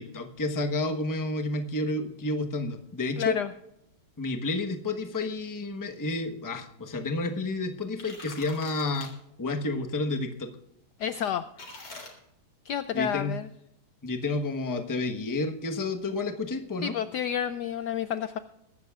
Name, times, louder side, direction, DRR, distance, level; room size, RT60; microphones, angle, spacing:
voice 1, 0.0-3.4 4.2-9.1 9.4-10.5 12.9-13.3 14.0-16.9, left 2 dB, 20° left, 4 dB, 0.6 m, -30 dB
voice 2, 3.2-3.5 11.0-11.5 12.6-13.5 16.8-18.4, left 9 dB, 85° left, 11 dB, 0.9 m, -30 dB
sound 1, 7.8-9.1 11.6-12.1, left 2 dB, 55° left, 4.1 m, -44 dB
22.0 x 12.0 x 2.4 m, 0.83 s
omnidirectional pair, 2.4 m